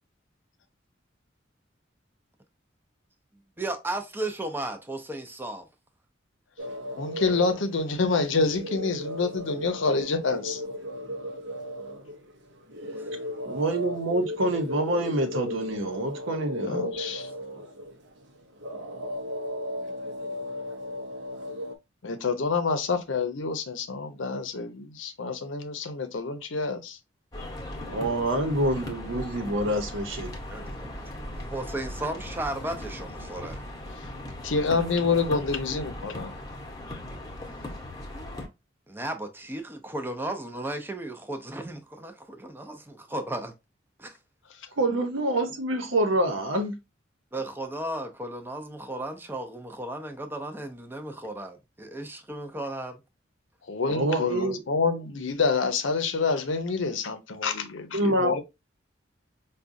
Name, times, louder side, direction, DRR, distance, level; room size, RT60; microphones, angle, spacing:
voice 1, 3.6-5.7 13.0-13.1 30.5-33.6 36.3-36.5 38.9-43.5 44.0-44.2 47.3-53.0, right 1 dB, 10° right, 0.5 m, -35 dB
sound 1, 6.6-21.7, left 1 dB, 65° right, 0.7 m, -36 dB
voice 2, 7.0-10.6 16.6-17.3 22.0-27.0 34.4-36.3 53.7-58.4, left 4 dB, 75° left, 0.7 m, -27 dB
voice 3, 13.4-16.8 27.9-30.3 44.8-46.7 53.9-54.6 57.9-58.3, right 1 dB, 90° right, 0.9 m, -26 dB
sound 2, 27.3-38.5, left 1 dB, 20° left, 0.9 m, -38 dB
4.9 x 2.3 x 2.6 m
head